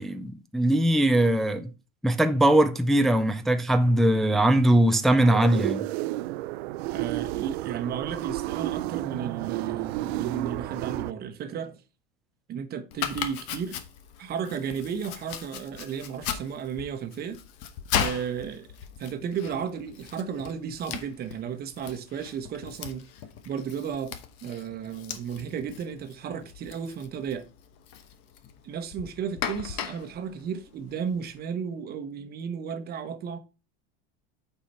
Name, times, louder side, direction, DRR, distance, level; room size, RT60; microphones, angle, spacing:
voice 1, 0.0-1.6 2.0-5.9, right 1 dB, ahead, 0.4 m, -21 dB
sound 1, 5.2-11.1, right 17 dB, 85° right, 0.5 m, -31 dB
voice 2, 6.9-11.8 12.5-13.8 14.2-17.4 17.9-18.7 19.0-23.0 23.4-27.5 28.6-33.4, right 7 dB, 30° right, 1.0 m, -34 dB
Domestic sounds home sounds, 12.9-31.4, left 9 dB, 55° left, 1.1 m, -38 dB
8.6 x 4.7 x 4.3 m
supercardioid pair, 150°, 31 cm